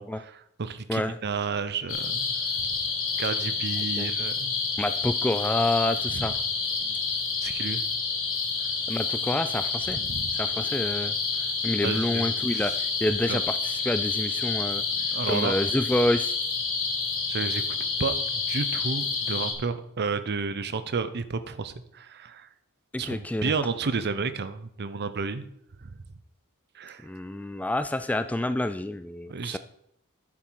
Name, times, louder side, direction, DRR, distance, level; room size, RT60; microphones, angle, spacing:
voice 1, 0.0-2.3 2.6-2.7 3.2-4.5 6.1-6.3 6.8-7.0 7.4-7.8 9.9-10.3 11.8-12.8 13.3-13.4 15.1-15.5 17.3-17.6 18.0-22.5 23.0-25.4 25.8-25.9 26.7-27.1 29.3-29.6, right 4 dB, 50° right, 12 dB, 0.7 m, -32 dB
sound 1, 1.9-19.5, left 4 dB, 65° left, 3.0 m, -29 dB
voice 2, 4.8-6.4 8.9-10.0 10.3-14.8 15.3-16.4 22.9-23.5 27.0-29.6, left 1 dB, 5° left, 11 dB, 0.3 m, -28 dB
10.5 x 7.5 x 4.7 m, 0.74 s
head